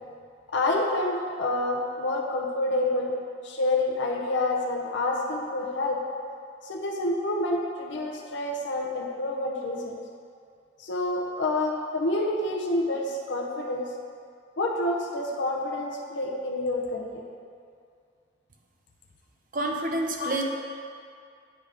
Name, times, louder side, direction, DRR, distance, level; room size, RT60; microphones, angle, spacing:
voice 1, 0.5-3.1 3.4-6.0 6.6-10.0 10.8-13.9 14.6-17.2 20.2-20.4, left 2 dB, 70° left, -1 dB, 0.7 m, -28 dB
voice 2, 19.5-20.4, right 1 dB, 45° right, 2 dB, 0.6 m, -28 dB
8.8 x 3.4 x 5.0 m, 2.3 s
head